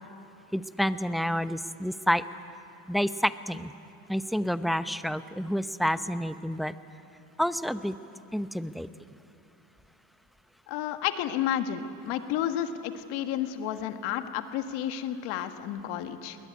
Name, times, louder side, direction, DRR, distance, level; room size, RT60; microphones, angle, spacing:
voice 1, 0.5-2.2 2.9-3.7 4.1-6.8 7.4-8.0 8.3-8.9, equal, ahead, 12 dB, 0.8 m, -29 dB
voice 2, 10.7-16.4, left 10 dB, 80° left, 8 dB, 1.6 m, -31 dB
21.0 x 20.0 x 9.5 m, 2.7 s
supercardioid pair, 85°, 39 cm